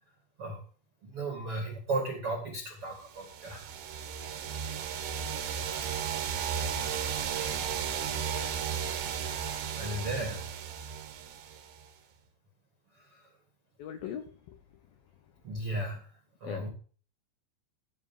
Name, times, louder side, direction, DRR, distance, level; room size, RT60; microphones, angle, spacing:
voice 1, 1.0-3.7 9.8-10.4 12.9-13.3 15.4-16.0 16.4-16.7, right 2 dB, 40° right, 1 dB, 2.1 m, -35 dB
sound 1, 3.1-11.9, right 7 dB, 70° right, 3.6 m, -34 dB
voice 2, 13.8-15.6 16.4-16.7, left 9 dB, 80° left, 7 dB, 2.1 m, -43 dB
15.5 x 5.5 x 7.4 m, 0.41 s
omnidirectional pair, 5.6 m